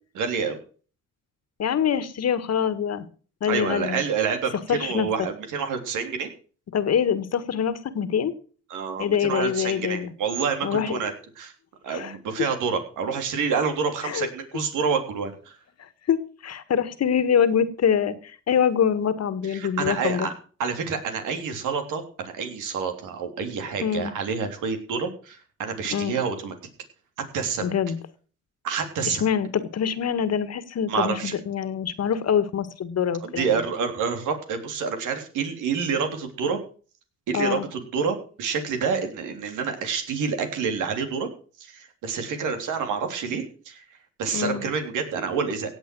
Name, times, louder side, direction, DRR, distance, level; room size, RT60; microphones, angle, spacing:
voice 1, 0.1-0.6 3.5-6.3 8.7-11.5 11.8-15.5 19.5-20.3 20.6-26.5 27.3-27.7 28.6-29.2 30.9-31.4 33.2-36.6 37.3-41.3 41.6-43.8 44.2-45.7, right 6 dB, 85° right, 6 dB, 3.5 m, -28 dB
voice 2, 1.6-3.1 3.4-4.0 4.7-5.1 6.7-8.3 9.0-10.1 10.6-10.9 11.9-12.1 14.0-14.3 16.1-20.3 23.8-24.1 25.9-26.2 27.6-28.0 29.1-33.6 37.3-37.7 44.3-44.6, left 8 dB, 55° left, 14 dB, 1.7 m, -24 dB
17.0 x 8.2 x 6.2 m, 0.40 s
cardioid pair, 90°, 30 cm